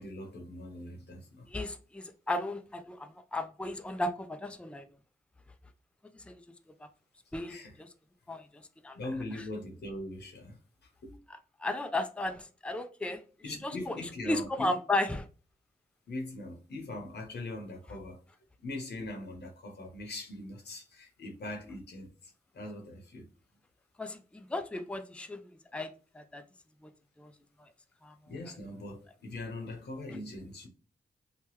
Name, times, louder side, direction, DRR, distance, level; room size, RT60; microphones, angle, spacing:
voice 1, 0.0-1.5 7.5-7.8 8.9-11.2 13.4-14.7 16.1-18.2 18.6-23.3 28.3-30.7, left 2 dB, 90° left, 0.9 m, -41 dB
voice 2, 1.5-4.8 6.3-6.4 7.3-7.9 8.3-9.0 11.6-13.2 13.6-13.9 14.2-15.3 24.0-25.4 25.7-26.4 26.8-26.9 27.2-27.3 27.6-27.7 28.0-28.1, left 2 dB, 5° left, 0.4 m, -35 dB
2.9 x 2.2 x 3.1 m
cardioid pair, 60°, 17 cm